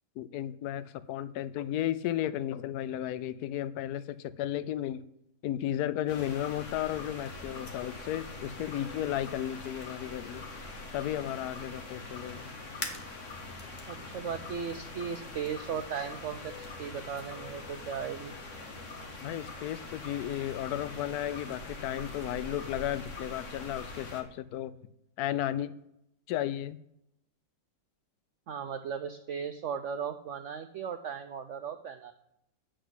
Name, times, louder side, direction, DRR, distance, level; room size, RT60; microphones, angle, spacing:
voice 1, 0.2-5.0 5.4-10.5 10.9-12.5 19.2-24.7 25.2-25.8 26.3-26.8, left 12 dB, 70° left, 14 dB, 1.0 m, -34 dB
sound 1, 6.1-24.2, left 2 dB, 45° left, 1.7 m, -43 dB
voice 2, 13.9-18.3 28.5-32.1, right 7 dB, 75° right, 7 dB, 0.6 m, -37 dB
7.5 x 6.5 x 8.0 m, 0.78 s
omnidirectional pair, 1.9 m